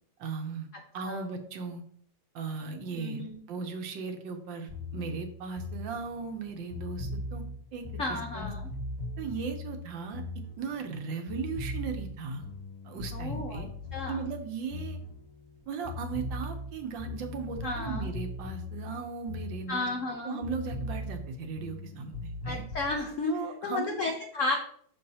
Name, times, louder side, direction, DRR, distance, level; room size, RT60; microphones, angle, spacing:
voice 1, 0.2-1.8 2.3-7.4 7.7-8.5 9.2-10.2 10.6-12.5 12.8-13.7 14.1-15.0 15.7-22.6 23.3-24.0, right 5 dB, 70° right, 5 dB, 1.4 m, -37 dB
voice 2, 3.0-3.4 8.0-8.6 13.1-14.2 17.6-18.1 19.7-20.4 22.4-23.3 23.6-24.5, left 3 dB, 75° left, 3 dB, 0.7 m, -33 dB
sound 1, 4.7-11.0 11.3-15.6 15.8-20.1 20.4-23.0, left 2 dB, 25° right, 1.3 m, -39 dB
6.3 x 5.4 x 2.8 m, 0.62 s
omnidirectional pair, 2.3 m